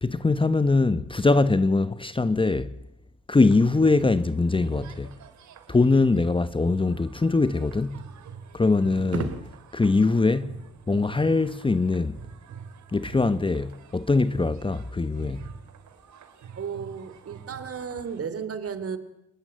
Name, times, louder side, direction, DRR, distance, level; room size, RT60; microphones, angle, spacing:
voice 1, 0.0-2.7 3.3-5.1 5.7-8.0 8.5-9.3 9.7-10.6 10.9-12.2 12.9-15.5, left 3 dB, 15° left, 1.0 m, -22 dB
sound 1, 3.4-18.2, right 6 dB, 70° right, 3.5 m, -45 dB
voice 2, 9.0-9.4 16.5-19.0, right 6 dB, 50° right, 3.2 m, -33 dB
29.5 x 20.0 x 8.9 m
cardioid pair, 90°, 30 cm